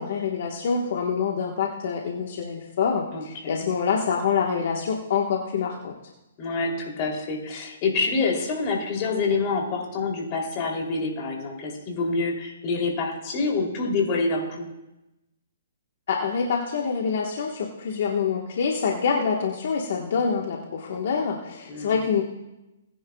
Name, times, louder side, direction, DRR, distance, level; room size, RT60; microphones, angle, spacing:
voice 1, 0.0-5.9 16.1-22.2, left 6 dB, 60° left, 0 dB, 1.4 m, -26 dB
voice 2, 3.1-3.6 6.4-14.7 21.7-22.0, left 3 dB, 35° left, 0 dB, 3.1 m, -27 dB
19.5 x 10.0 x 2.4 m, 0.97 s
hypercardioid pair, 145°, 0 cm